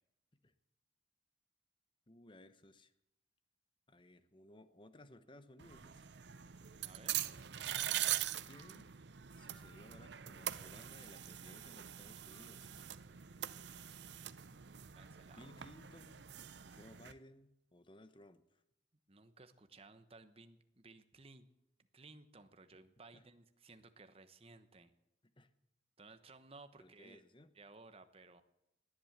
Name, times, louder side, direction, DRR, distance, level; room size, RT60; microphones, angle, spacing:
voice 1, 2.1-2.9 3.9-6.1 8.4-8.8 9.4-12.9 15.3-16.3 16.6-18.6 23.1-23.3 25.4-25.5 26.8-27.5, left 1 dB, 25° left, 12 dB, 1.0 m, -60 dB
sound 1, 5.6-17.1, right 12 dB, 70° right, 0.6 m, -43 dB
voice 2, 6.8-7.2 14.0-14.2 14.9-15.4 19.1-21.5 21.9-24.9 26.0-27.2 27.5-28.4, right 3 dB, 30° right, 9 dB, 1.1 m, -58 dB
19.0 x 10.5 x 7.4 m, 0.89 s
head